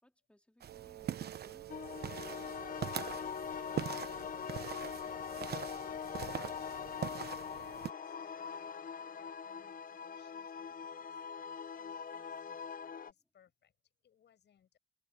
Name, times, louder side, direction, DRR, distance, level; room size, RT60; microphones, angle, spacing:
voice 1, 0.0-1.7, left 1 dB, 5° left, 3.6 m, -66 dB
sound 1, 0.6-7.9, right 9 dB, 55° right, 1.0 m, -43 dB
Wind instrument woodwind instrument, 0.7-8.0, right 16 dB, 90° right, 0.6 m, -54 dB
sound 2, 1.7-13.1, left 7 dB, 45° left, 0.8 m, -42 dB
voice 2, 5.6-7.1 7.5-12.8 13.0-14.8, left 9 dB, 60° left, 7.5 m, -70 dB
cardioid pair, 90°, 20 cm